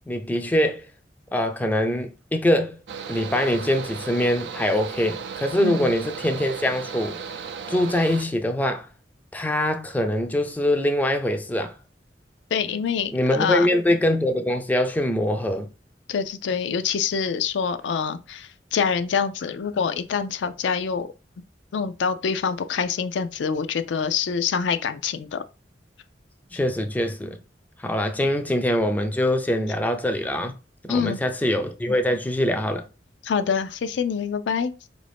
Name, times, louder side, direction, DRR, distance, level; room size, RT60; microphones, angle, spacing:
voice 1, 0.1-0.9 1.3-2.8 3.1-7.2 7.7-8.9 9.3-11.7 13.1-15.7 26.5-27.4 27.8-30.5 30.8-32.8, left 1 dB, 10° left, 0.4 m, -23 dB
Mechanical fan, 2.9-8.2, right 6 dB, 75° right, 0.4 m, -35 dB
voice 2, 5.6-5.9 12.5-13.7 16.1-21.1 21.7-25.4 30.9-31.2 33.2-34.7, left 6 dB, 90° left, 0.4 m, -25 dB
4.4 x 2.6 x 3.3 m
head